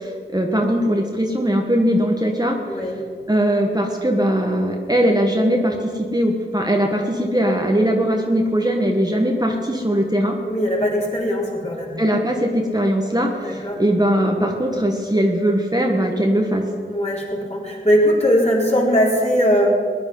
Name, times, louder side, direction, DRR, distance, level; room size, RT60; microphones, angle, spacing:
voice 1, 0.0-2.6 3.3-10.4 12.0-16.7, equal, 20° right, 1 dB, 1.4 m, -20 dB
voice 2, 2.7-3.0 10.5-11.9 13.3-13.8 16.9-19.8, equal, 35° left, -4 dB, 4.0 m, -20 dB
18.0 x 10.5 x 5.6 m, 2.1 s
wide cardioid pair, 40°, 20 cm